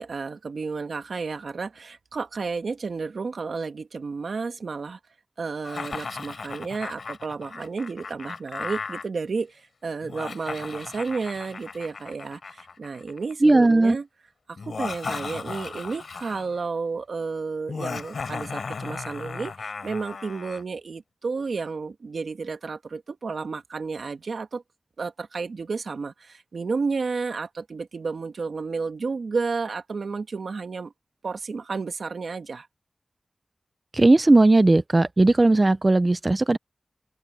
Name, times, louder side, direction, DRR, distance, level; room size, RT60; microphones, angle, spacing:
voice 1, 0.0-5.0 5.4-14.1 14.6-24.6 25.0-30.9 31.2-32.7, right 4 dB, 90° right, 1.6 m, -32 dB
Laughter, 5.6-9.0 10.0-13.3 14.6-16.6 17.7-20.6, left 4 dB, 90° left, 4.5 m, -36 dB
voice 2, 13.4-14.0 33.9-36.6, right 2 dB, 40° right, 0.5 m, -17 dB
open air
cardioid pair, 50°, 0 cm